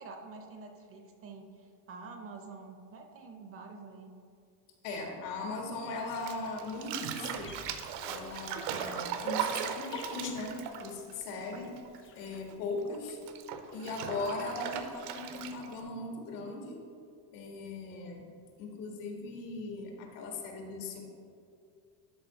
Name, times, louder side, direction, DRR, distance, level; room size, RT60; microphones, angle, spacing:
voice 1, 0.0-4.1, right 4 dB, 30° right, 5 dB, 0.6 m, -47 dB
voice 2, 4.8-7.5 8.0-11.7 12.1-13.2 13.7-16.8 17.3-18.2 18.6-21.0, left 3 dB, 85° left, 1 dB, 1.9 m, -39 dB
Bathtub (filling or washing), 6.1-12.0 12.2-15.8, right 8 dB, 65° right, 0.8 m, -38 dB
sound 1, 7.3-12.8, left 7 dB, 25° left, 0.5 m, -52 dB
11.0 x 3.9 x 5.6 m, 2.4 s
cardioid pair, 150°, 50 cm